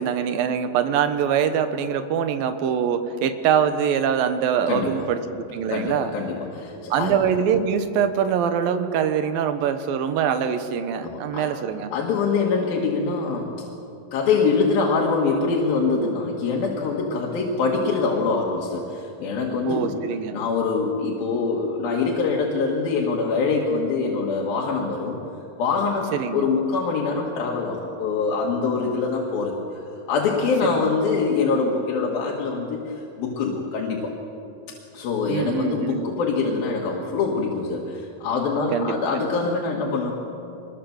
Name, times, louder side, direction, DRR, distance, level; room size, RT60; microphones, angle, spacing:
voice 1, 0.0-5.2 5.5-6.1 6.9-11.9 19.7-20.4 26.1-26.5 30.6-30.9 35.3-36.1 38.7-39.0 39.4-39.5, right 8 dB, 85° right, 9 dB, 2.9 m, -23 dB
voice 2, 4.7-5.1 5.7-7.2 11.0-11.5 11.9-13.7 14.1-19.9 20.3-25.2 25.6-29.6 30.1-34.1 34.9-40.1, left 4 dB, 90° left, -2 dB, 3.6 m, -24 dB
24.5 x 21.5 x 7.2 m, 2.7 s
omnidirectional pair, 4.0 m